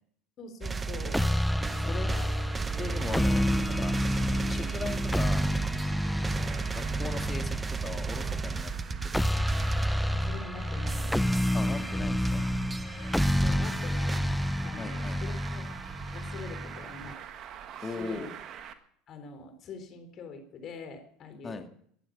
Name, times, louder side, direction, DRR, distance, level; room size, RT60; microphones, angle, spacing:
voice 1, 0.4-1.3 1.8-2.3 8.6-8.7 10.2-11.2 11.7-12.0 12.8-14.3 14.6-15.8 16.1-17.2 17.8-18.3 19.1-21.7, left 4 dB, 45° left, 7 dB, 4.1 m, -44 dB
sound 1, 0.6-10.1 10.9-11.8 12.2-12.4 12.7-14.2, right 4 dB, 20° right, 0.9 m, -35 dB
sound 2, 1.1-17.1, equal, 5° left, 0.5 m, -29 dB
Traffic noise roadway noise, 1.6-18.7, right 9 dB, 50° right, 1.6 m, -43 dB
voice 2, 2.8-3.9 4.5-5.5 6.2-8.7 9.0-9.6 11.5-12.5 14.8-15.3 17.8-18.3 21.4-21.7, left 4 dB, 25° left, 6 dB, 2.1 m, -39 dB
20.0 x 11.0 x 5.5 m, 0.64 s
hypercardioid pair, 80°, 0 cm